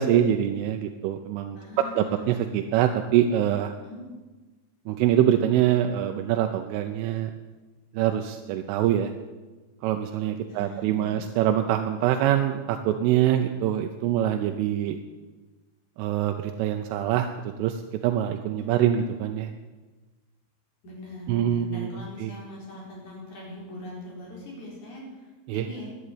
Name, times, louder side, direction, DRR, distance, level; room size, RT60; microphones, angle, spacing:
voice 1, 0.0-3.7 4.9-7.3 7.9-9.1 9.8-15.0 16.0-19.5 21.3-22.3 25.5-25.7, right 11 dB, 85° right, 5 dB, 3.2 m, -24 dB
voice 2, 1.5-2.4 3.8-4.0 10.5-11.6 18.6-19.1 20.8-25.9, left 1 dB, 40° left, -4 dB, 5.2 m, -41 dB
11.0 x 11.0 x 8.4 m, 1.2 s
omnidirectional pair, 5.6 m